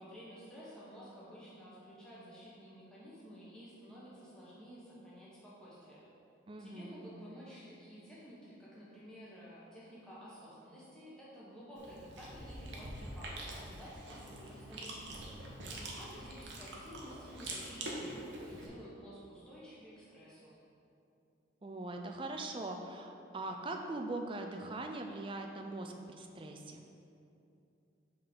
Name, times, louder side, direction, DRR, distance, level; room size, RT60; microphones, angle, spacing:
voice 1, 0.0-6.0 6.6-20.5, equal, 5° left, -9 dB, 1.3 m, -52 dB
voice 2, 6.5-7.1 21.6-26.8, right 2 dB, 25° right, 4 dB, 0.4 m, -41 dB
Chewing mastication, 11.8-18.7, right 1 dB, 65° right, 0.9 m, -45 dB
5.5 x 3.9 x 5.4 m, 2.7 s
head